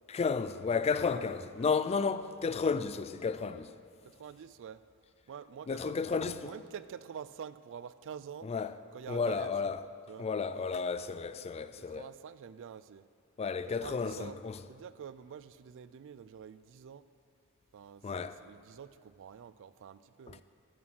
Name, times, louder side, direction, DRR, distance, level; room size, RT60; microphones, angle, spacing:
voice 1, 0.1-3.7 5.7-6.5 8.4-8.8 9.1-9.8 10.2-12.1 13.4-14.6 18.0-18.4 20.3-20.4, left 5 dB, 30° left, 0.3 m, -32 dB
voice 2, 4.0-4.8 5.3-8.5 8.9-9.5 10.1-10.3 11.8-13.1 13.8-14.4 14.7-17.0 17.7-20.4, right 7 dB, 60° right, 0.3 m, -47 dB
11.0 x 8.6 x 6.0 m
head